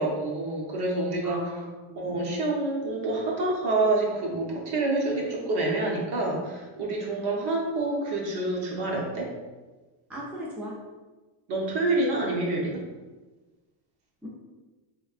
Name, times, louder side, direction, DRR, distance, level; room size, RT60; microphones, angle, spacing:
voice 1, 0.0-1.4 1.9-9.3 11.5-12.8, right 2 dB, 55° right, -2 dB, 1.0 m, -27 dB
voice 2, 1.2-2.1 10.1-10.7 14.2-14.3, equal, 5° right, -6 dB, 0.5 m, -38 dB
3.3 x 3.1 x 2.4 m, 1.2 s
cardioid pair, 120°, 48 cm